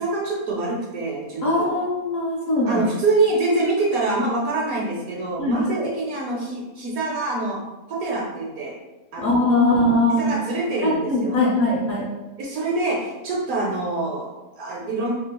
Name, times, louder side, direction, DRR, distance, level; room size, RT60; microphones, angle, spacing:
voice 1, 0.0-1.8 2.7-7.6 7.9-8.8 9.1-9.5 10.1-11.4 12.4-15.1, right 2 dB, 70° right, -3 dB, 1.0 m, -25 dB
voice 2, 1.4-2.8 5.4-5.9 9.2-10.3 10.8-12.1, left 1 dB, 70° left, -6 dB, 1.1 m, -21 dB
3.0 x 2.3 x 2.8 m, 1.1 s
omnidirectional pair, 1.6 m